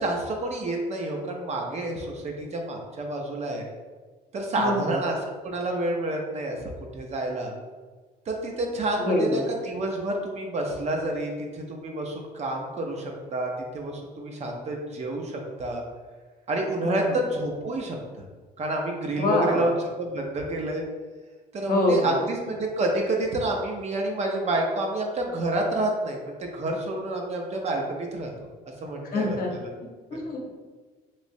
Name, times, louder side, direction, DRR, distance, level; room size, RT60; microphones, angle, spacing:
voice 1, 0.0-3.7 4.3-5.2 5.4-6.6 6.9-7.6 8.3-15.8 16.5-18.3 18.6-20.8 21.5-28.3 28.8-29.7, right 1 dB, 40° right, 1 dB, 0.6 m, -29 dB
voice 2, 4.6-5.0 9.0-9.4 16.8-17.2 19.2-19.7 21.7-22.2 29.1-29.5 30.1-30.5, left 1 dB, 55° left, 0 dB, 0.8 m, -25 dB
3.1 x 2.9 x 2.6 m, 1.4 s
cardioid pair, 110°, 17 cm